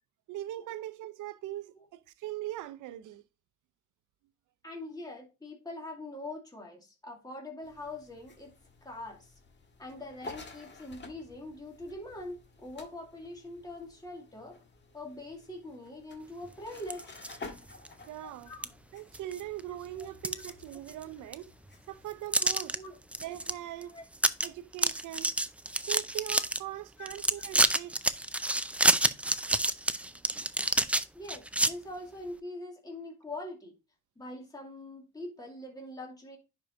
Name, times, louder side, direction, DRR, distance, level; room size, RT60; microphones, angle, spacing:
voice 1, 0.3-3.2 18.1-18.5 18.9-21.5 21.9-22.8 23.2-23.9 24.4-25.3 25.9-28.0 30.2-30.4, right 14 dB, 85° right, 0.7 m, -41 dB
voice 2, 4.6-8.5 8.8-9.3 9.8-14.6 14.9-17.2 18.5-18.8 20.0-20.4 22.7-23.0 23.8-24.0 27.0-27.1 31.1-33.7 34.2-36.4, left 2 dB, 10° left, 2.3 m, -43 dB
sound 1, 7.6-23.7, left 3 dB, 35° left, 1.6 m, -52 dB
sound 2, 16.8-17.4 17.8-17.9 18.6-18.7 19.1-19.6 20.0-21.0 21.3-21.4 22.3-22.8 23.1-23.5 23.8-23.9 24.2-24.5 24.7-26.6 27.1-31.7, right 1 dB, 5° right, 0.4 m, -28 dB
10.0 x 4.6 x 2.6 m
cardioid pair, 90°, 30 cm